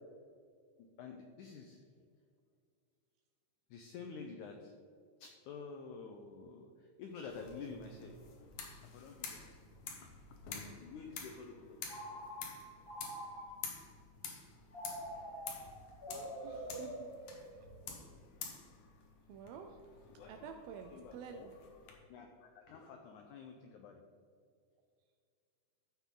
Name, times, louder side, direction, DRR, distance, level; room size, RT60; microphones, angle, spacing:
voice 1, 1.0-1.8 3.7-4.7 5.2-8.2 8.9-9.4 10.0-10.1 10.7-11.8 16.5-16.6 20.1-20.5 20.9-21.5 22.1-24.0, left 5 dB, 85° left, 3 dB, 1.7 m, -49 dB
sound 1, 7.3-21.9, left 5 dB, 65° left, 2.2 m, -50 dB
Telephone, 11.9-13.9 14.7-17.8, equal, 40° left, 0.8 m, -46 dB
voice 2, 16.1-17.1 17.5-17.7 19.3-19.8 20.3-21.5, right 6 dB, 80° right, 4 dB, 2.4 m, -50 dB
13.0 x 5.8 x 3.7 m, 2.2 s
omnidirectional pair, 4.3 m